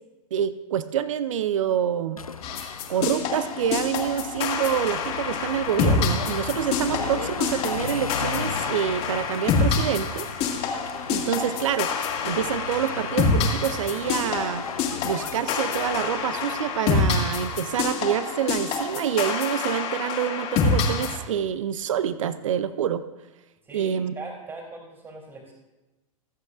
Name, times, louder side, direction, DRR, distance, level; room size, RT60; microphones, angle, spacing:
voice 1, 0.3-2.2 2.9-10.3 11.1-11.9 12.2-14.6 15.0-23.0 23.7-24.1, right 9 dB, 65° right, 14 dB, 0.6 m, -27 dB
sound 1, 2.2-16.8, left 6 dB, 85° left, 0.5 m, -37 dB
sound 2, 2.4-21.2, left 4 dB, 35° left, 1.9 m, -27 dB
voice 2, 23.6-25.5, right 3 dB, 20° right, 0 dB, 2.8 m, -40 dB
23.5 x 8.2 x 2.5 m, 1.1 s
figure-of-eight pair, 95°, 18 cm